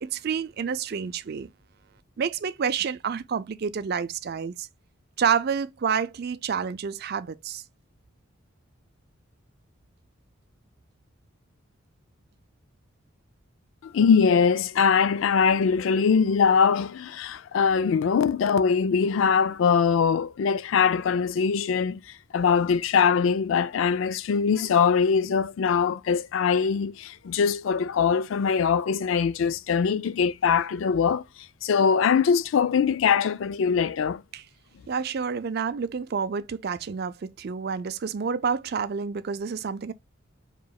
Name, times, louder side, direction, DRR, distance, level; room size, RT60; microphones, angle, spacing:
voice 1, 0.0-1.5 2.2-4.7 5.2-7.6 34.3-34.4 34.9-39.9, right 6 dB, 50° right, 0.4 m, -29 dB
voice 2, 13.8-22.0 22.3-31.2 31.6-34.2, left 6 dB, 70° left, 0.4 m, -22 dB
4.9 x 3.0 x 2.3 m
head